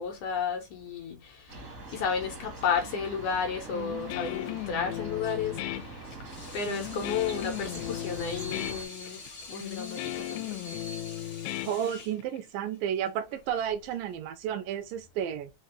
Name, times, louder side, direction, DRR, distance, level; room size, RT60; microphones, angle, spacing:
voice 1, 0.0-1.6 1.9-5.6 6.5-9.2 9.5-10.8, left 6 dB, 70° left, 2.0 m, -32 dB
sound 1, 1.5-8.9, right 2 dB, 55° right, 0.9 m, -44 dB
Guitar, 3.7-12.4, left 15 dB, 90° left, 2.4 m, -37 dB
Water tap faucet / Sink (filling or washing), 6.1-14.1, left 2 dB, 50° left, 0.9 m, -46 dB
voice 2, 11.7-15.5, right 9 dB, 80° right, 2.2 m, -32 dB
5.9 x 2.6 x 3.1 m
omnidirectional pair, 4.1 m